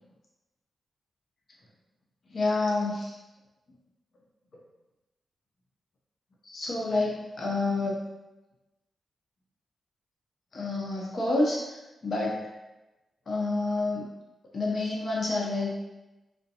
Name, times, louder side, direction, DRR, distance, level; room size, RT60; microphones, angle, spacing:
voice 1, 2.3-3.1 6.5-8.0 10.5-11.6 12.0-12.4 13.3-14.1 14.5-15.9, left 2 dB, 60° left, -3 dB, 0.7 m, -28 dB
2.6 x 2.2 x 2.6 m, 1.0 s
supercardioid pair, 40°, 0 cm